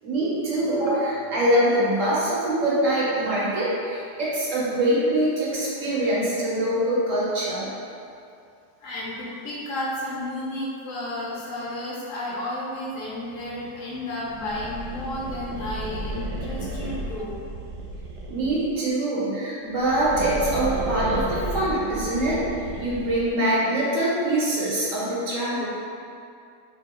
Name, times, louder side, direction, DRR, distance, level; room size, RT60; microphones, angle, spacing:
voice 1, 0.0-7.7 18.3-22.4 22.8-25.6, right 1 dB, 60° right, -7 dB, 0.9 m, -24 dB
voice 2, 8.8-17.3, left 1 dB, 65° left, -5 dB, 0.9 m, -32 dB
sound 1, 14.3-18.8 19.7-23.4, right 1 dB, 80° right, 1.2 m, -33 dB
3.9 x 3.0 x 2.2 m, 2.5 s
omnidirectional pair, 1.8 m